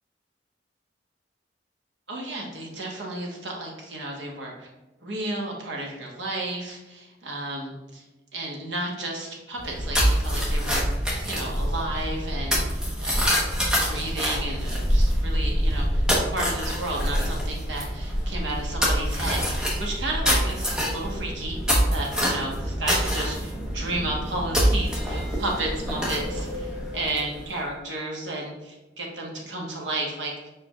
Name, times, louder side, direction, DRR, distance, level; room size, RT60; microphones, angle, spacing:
voice 1, 2.1-4.7 5.0-8.0 8.3-13.3 13.7-21.6 21.9-30.5, right 2 dB, 85° right, -1 dB, 1.1 m, -33 dB
sound 1, 9.6-27.5, equal, 5° right, 0.9 m, -25 dB
4.9 x 4.5 x 2.3 m, 1.0 s
head